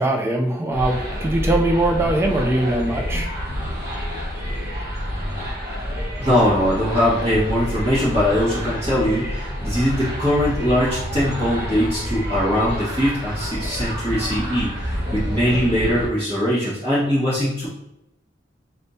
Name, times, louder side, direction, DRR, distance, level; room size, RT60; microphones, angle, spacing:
voice 1, 0.0-3.3, right 1 dB, 15° right, 2 dB, 0.4 m, -21 dB
sound 1, 0.7-16.1, equal, 60° right, 1.2 m, -28 dB
voice 2, 6.2-17.7, equal, 30° right, -11 dB, 1.5 m, -21 dB
4.2 x 3.6 x 2.7 m, 0.84 s
head